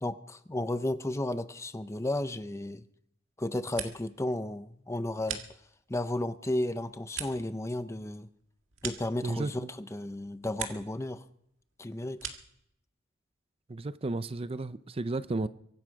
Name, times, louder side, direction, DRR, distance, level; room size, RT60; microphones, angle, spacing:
voice 1, 0.0-2.8 3.4-5.4 5.9-8.3 8.8-11.2 11.8-12.3, left 1 dB, 15° left, 0.6 m, -33 dB
sound 1, 3.4-4.3 4.6-6.0 6.4-9.7 10.1-11.0 11.3-12.6, right 9 dB, 85° right, 1.9 m, -43 dB
voice 2, 9.2-9.7 13.7-15.5, right 2 dB, 30° right, 0.5 m, -33 dB
24.0 x 11.5 x 4.8 m
head